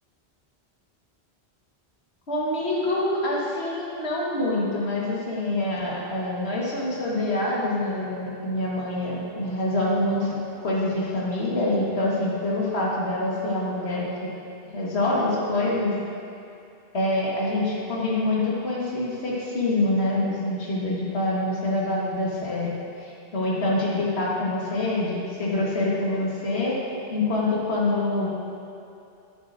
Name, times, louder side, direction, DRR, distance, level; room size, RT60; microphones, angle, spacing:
voice 1, 2.3-10.3 10.6-14.3 14.7-16.0 16.9-22.7 23.0-26.8 27.1-28.3, left 2 dB, 85° left, -5 dB, 1.8 m, -26 dB
11.0 x 8.5 x 2.6 m, 2.6 s
omnidirectional pair, 1.1 m